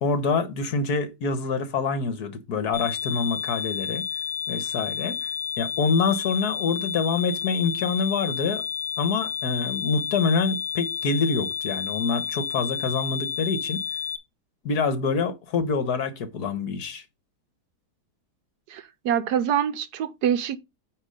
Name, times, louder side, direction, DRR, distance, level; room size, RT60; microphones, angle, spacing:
voice 1, 0.0-4.1 4.5-5.3 5.6-8.6 9.0-13.8 14.6-17.0, left 4 dB, 65° left, 1.7 m, -26 dB
sound 1, 2.7-14.2, left 8 dB, 30° right, 1.2 m, -31 dB
voice 2, 18.7-20.6, right 9 dB, 75° right, 1.2 m, -25 dB
9.2 x 3.1 x 6.4 m
omnidirectional pair, 1.8 m